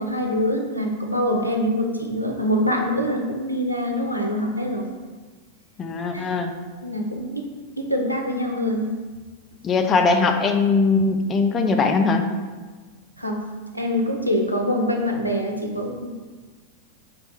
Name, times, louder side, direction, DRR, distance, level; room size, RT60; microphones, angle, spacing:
voice 1, 0.0-4.9 6.8-7.5 7.8-8.9 13.2-13.4 13.7-16.1, equal, 90° right, 1 dB, 0.4 m, -24 dB
voice 2, 5.8-6.5 9.6-12.2, left 4 dB, 25° left, 5 dB, 0.3 m, -20 dB
3.3 x 2.2 x 4.2 m, 1.4 s
figure-of-eight pair, 90°, 0 cm